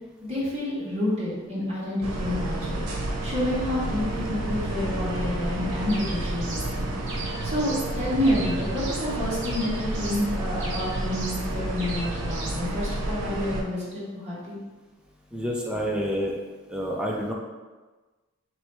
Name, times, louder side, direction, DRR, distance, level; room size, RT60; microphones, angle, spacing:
voice 1, 0.3-2.9 3.2-6.9 7.2-14.6, left 1 dB, 30° right, -9 dB, 1.4 m, -29 dB
sound 1, 2.0-13.6, right 1 dB, 85° right, 0.7 m, -30 dB
sound 2, 5.9-6.7 7.1-7.9 8.2-9.1 9.4-10.3 10.6-11.4 11.8-12.6, right 2 dB, 55° right, 1.2 m, -38 dB
voice 2, 15.3-16.4 16.7-17.3, equal, 5° right, -2 dB, 0.5 m, -28 dB
3.1 x 3.0 x 4.5 m, 1.3 s
head